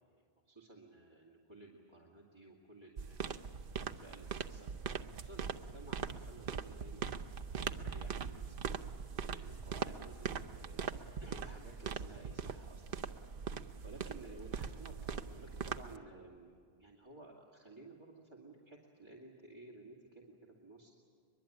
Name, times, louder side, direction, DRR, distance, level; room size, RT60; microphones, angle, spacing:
voice 1, 0.0-3.6 3.8-4.7 5.1-7.1 7.6-8.7 9.1-10.9 11.2-13.0 13.3-20.9, right 2 dB, 25° right, -3 dB, 2.5 m, -55 dB
sound 1, 3.0-16.0, right 6 dB, 60° right, 1.0 m, -41 dB
23.5 x 22.0 x 8.8 m, 2.2 s
omnidirectional pair, 1.0 m